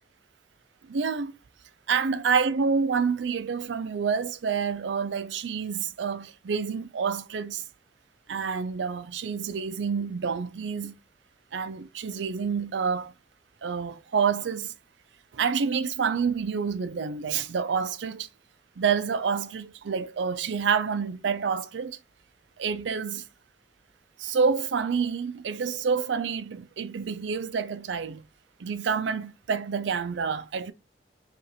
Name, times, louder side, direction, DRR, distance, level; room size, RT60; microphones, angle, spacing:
voice 1, 0.9-1.3 1.9-7.6 8.3-11.0 11.5-13.1 13.6-14.7 15.3-18.3 18.8-22.0 22.6-23.3 24.2-28.2 28.6-30.7, right 6 dB, 90° right, 0.4 m, -28 dB
4.9 x 2.5 x 2.8 m
head